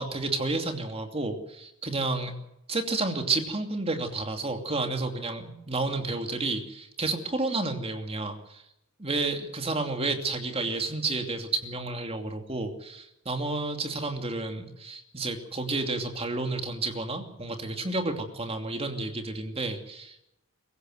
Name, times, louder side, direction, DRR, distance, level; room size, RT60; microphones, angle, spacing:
voice 1, 0.0-2.3 2.7-8.6 9.0-20.2, right 3 dB, 30° right, 5 dB, 2.7 m, -31 dB
24.0 x 15.5 x 7.8 m, 0.86 s
head